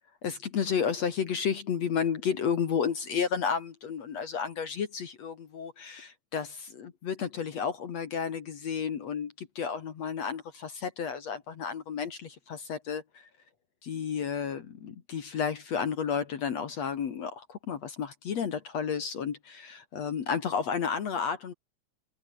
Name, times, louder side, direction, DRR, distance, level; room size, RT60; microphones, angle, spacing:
voice 1, 0.2-13.3 13.8-21.5, left 7 dB, 55° left, 2.1 m, -32 dB
omnidirectional pair, 5.2 m